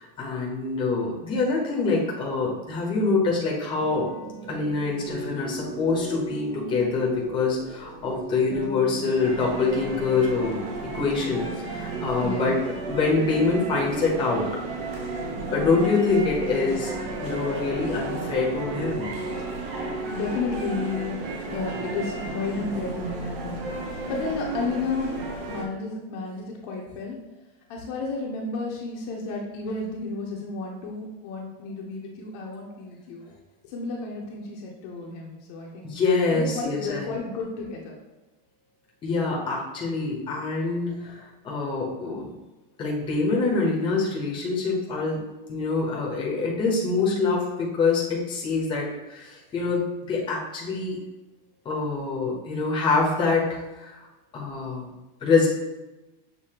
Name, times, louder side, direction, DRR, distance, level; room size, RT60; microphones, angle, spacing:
voice 1, 0.0-4.1 4.5-10.6 10.9-12.6 12.9-14.5 15.5-16.9 17.2-19.1 35.8-37.1 39.0-42.3 42.8-45.2 45.5-51.0 51.6-54.1 54.3-54.9 55.2-55.5, left 4 dB, 15° left, -3 dB, 0.9 m, -25 dB
sound 1, 3.8-23.1, right 2 dB, 25° right, 0.4 m, -37 dB
sound 2, 9.2-25.7, right 3 dB, 70° right, 1.1 m, -34 dB
voice 2, 12.2-12.6 20.1-25.1 25.4-27.2 27.7-33.2 33.6-35.9 36.3-38.0, left 3 dB, 45° left, -1 dB, 0.8 m, -32 dB
6.6 x 2.7 x 2.9 m, 1.1 s
supercardioid pair, 160°, 29 cm